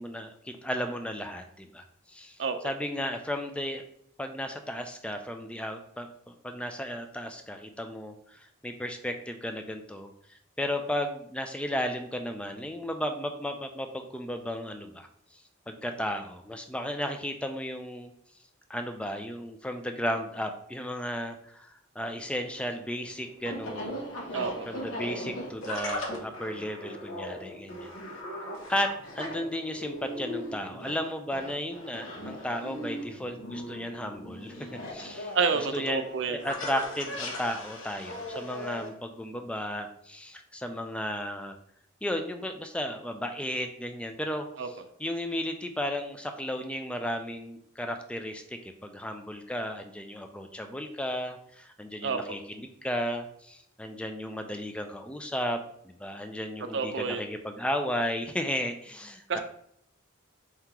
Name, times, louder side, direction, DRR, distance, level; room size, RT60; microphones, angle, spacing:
voice 1, 0.0-2.4 2.6-3.8 4.2-18.1 18.7-21.7 22.0-24.0 24.7-27.9 28.7-41.6 42.0-55.6 55.8-59.4, equal, 5° left, 6 dB, 0.3 m, -34 dB
sound 1, 22.3-38.9, left 1 dB, 75° left, 0.9 m, -39 dB
voice 2, 24.3-24.7 35.3-36.5 44.6-44.7 52.0-52.2 56.7-57.3 59.3-59.4, right 5 dB, 60° right, 8 dB, 0.5 m, -29 dB
4.4 x 3.7 x 2.9 m, 0.69 s
head